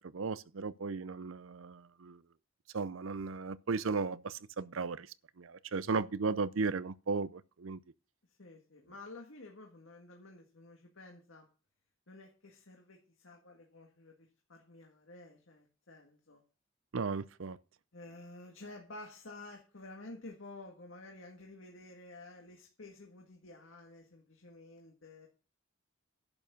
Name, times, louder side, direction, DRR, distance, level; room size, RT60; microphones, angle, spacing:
voice 1, 0.0-2.2 2.7-5.1 5.4-7.8 16.9-17.6, right 4 dB, 80° right, 0.6 m, -35 dB
voice 2, 8.3-11.5 12.1-16.4 17.9-25.3, left 2 dB, 70° left, 1.8 m, -51 dB
10.5 x 7.0 x 6.1 m
head